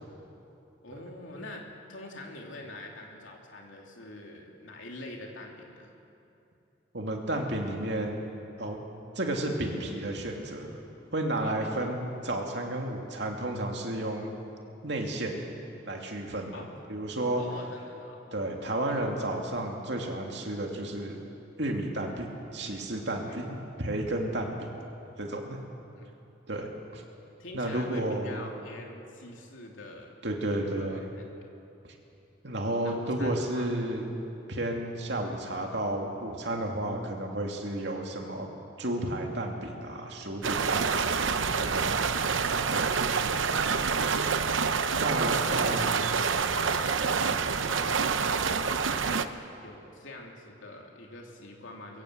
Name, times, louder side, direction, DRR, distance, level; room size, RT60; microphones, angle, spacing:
voice 1, 0.8-5.9 11.4-11.9 16.5-16.8 17.4-18.4 23.2-23.5 25.9-26.1 27.4-30.1 30.8-31.2 32.8-33.8 45.2-46.0 46.5-49.3 49.6-52.0, left 2 dB, 80° left, 0 dB, 3.1 m, -45 dB
voice 2, 6.9-8.2 8.6-8.8 9.2-10.7 11.1-14.3 14.8-15.4 15.9-16.6 16.9-17.4 18.3-21.2 21.6-24.7 25.2-25.6 26.5-27.0 27.5-28.5 30.2-31.1 31.8-31.9 32.4-34.1 34.5-38.5 38.8-42.0 42.7-42.9 44.9-46.1, right 1 dB, 60° right, 1 dB, 2.6 m, -32 dB
sound 1, 40.4-49.3, right 5 dB, 80° right, 0.8 m, -27 dB
23.0 x 17.0 x 8.0 m, 2.8 s
head